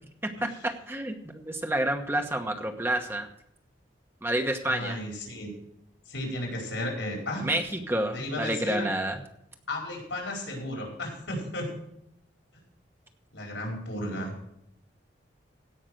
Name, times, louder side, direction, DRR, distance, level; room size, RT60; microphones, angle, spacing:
voice 1, 0.4-3.3 4.2-5.0 7.4-9.2, right 1 dB, 10° right, 5 dB, 1.1 m, -29 dB
voice 2, 4.6-5.5 6.1-7.5 8.1-8.9 9.7-11.7 13.3-14.3, left 1 dB, 85° left, 0 dB, 5.0 m, -34 dB
16.5 x 5.8 x 6.4 m, 0.78 s
head